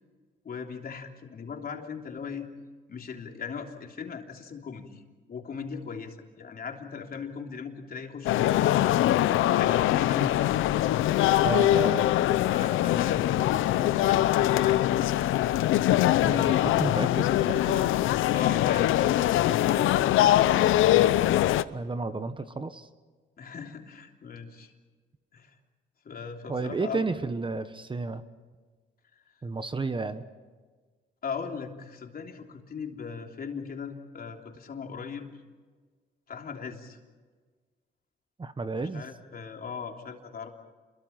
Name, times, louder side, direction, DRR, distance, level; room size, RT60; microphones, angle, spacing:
voice 1, 0.4-2.5 2.9-5.0 5.3-9.2 9.6-10.6 12.5-15.3 18.3-19.1 23.4-24.7 25.3-25.5 26.0-27.0 31.2-35.3 36.3-37.0 38.8-40.5, left 6 dB, 50° left, 2 dB, 3.4 m, -39 dB
sound 1, 8.3-21.6, left 13 dB, 85° left, 0.7 m, -23 dB
voice 2, 11.4-12.1 16.2-18.3 21.7-22.9 26.5-28.2 29.4-30.2 38.4-39.1, right 3 dB, 25° right, 10 dB, 1.2 m, -32 dB
28.5 x 22.5 x 5.9 m, 1.4 s
cardioid pair, 90°, 20 cm